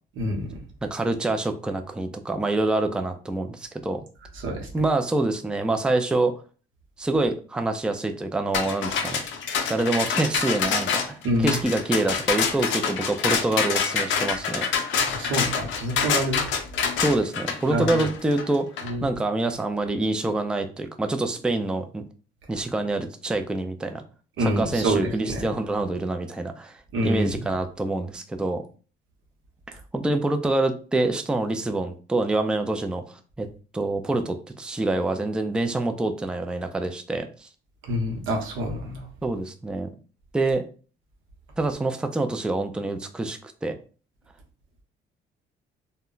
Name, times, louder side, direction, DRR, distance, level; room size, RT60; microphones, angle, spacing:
voice 1, 0.2-0.6 4.4-4.7 11.2-11.6 15.1-16.4 17.7-17.9 18.8-19.1 24.4-25.5 26.9-27.3 37.9-39.0, equal, 80° right, 1 dB, 0.9 m, -26 dB
voice 2, 0.8-4.0 4.7-6.3 7.0-9.2 9.7-14.7 17.0-18.7 19.0-22.0 22.5-24.0 24.4-28.6 29.7-33.5 33.7-37.5 39.2-39.9 40.3-40.6 41.6-43.8, right 2 dB, 5° right, 6 dB, 0.3 m, -26 dB
sound 1, 8.5-18.9, left 6 dB, 70° left, 0.5 m, -26 dB
2.1 x 2.1 x 3.7 m, 0.38 s
cardioid pair, 90°, 20 cm